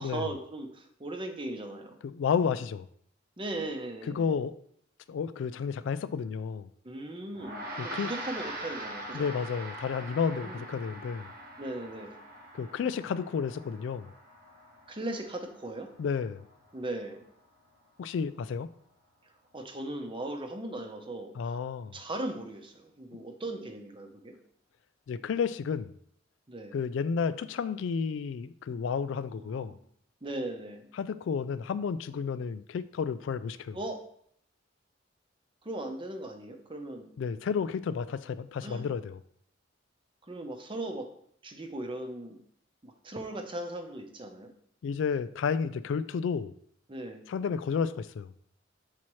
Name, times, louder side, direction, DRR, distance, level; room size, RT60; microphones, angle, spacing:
voice 1, 0.0-2.0 3.4-4.3 6.8-9.3 10.3-10.7 11.6-12.1 14.9-15.9 16.7-17.2 19.5-21.5 21.9-24.4 26.5-26.7 29.4-29.8 30.2-30.9 33.7-34.0 35.6-37.1 38.6-38.8 40.3-41.1 41.4-42.4 42.8-44.5 46.9-47.2, right 1 dB, 25° right, 5 dB, 0.7 m, -38 dB
voice 2, 2.0-2.9 4.1-4.5 5.1-6.7 7.8-8.1 9.1-11.3 12.5-14.1 16.0-16.5 18.0-18.7 21.4-22.0 23.1-23.2 25.1-25.9 26.7-29.8 31.0-33.8 37.2-39.2 44.8-46.5 47.3-48.3, left 6 dB, 70° left, 14 dB, 0.3 m, -31 dB
Gong, 7.3-16.9, right 1 dB, 50° right, 1.1 m, -43 dB
7.4 x 4.2 x 3.1 m, 0.67 s
head